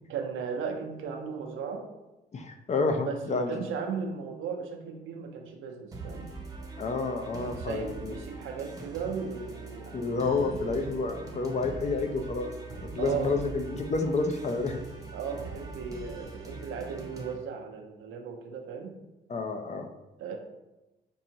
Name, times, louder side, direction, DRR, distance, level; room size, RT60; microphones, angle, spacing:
voice 1, 0.1-1.8 3.1-6.3 7.4-10.6 13.0-13.4 15.1-19.0 20.2-20.4, right 6 dB, 85° right, 3 dB, 0.6 m, -36 dB
voice 2, 2.3-3.7 6.8-8.1 9.9-12.5 12.9-14.8 19.3-19.9, left 3 dB, 35° left, 6 dB, 0.5 m, -29 dB
sound 1, 5.9-17.3, right 3 dB, 15° right, 0.8 m, -42 dB
5.4 x 2.5 x 2.8 m, 1.0 s
cardioid pair, 90°, 20 cm